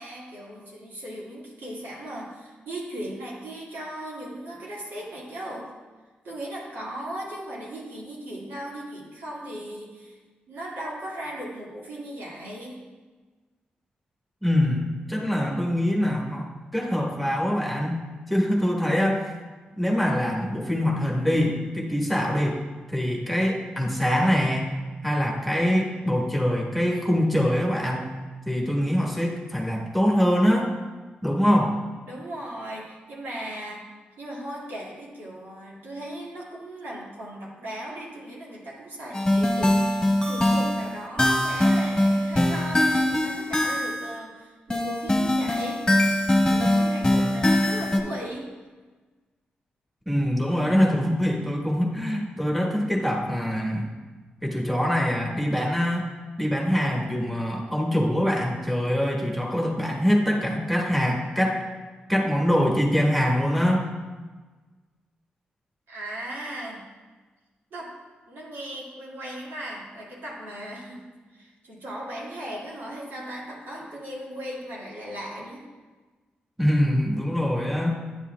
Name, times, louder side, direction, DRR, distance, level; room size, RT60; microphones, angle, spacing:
voice 1, 0.0-5.7 6.2-10.2 10.5-12.8 32.1-33.9 34.2-45.9 46.4-48.5 65.9-66.8 67.7-68.0 68.3-71.1 71.3-75.6, right 1 dB, 85° right, -6 dB, 2.1 m, -37 dB
voice 2, 14.4-19.2 19.8-22.6 22.9-24.7 25.0-28.1 28.4-30.7 31.2-31.7 50.1-53.9 54.4-56.1 56.4-61.6 62.1-63.9 76.6-78.0, equal, ahead, -1 dB, 1.4 m, -24 dB
sound 1, 39.1-44.2 44.7-48.0, left 1 dB, 15° left, 1.2 m, -22 dB
10.5 x 7.1 x 2.3 m, 1.3 s
cardioid pair, 65°, 4 cm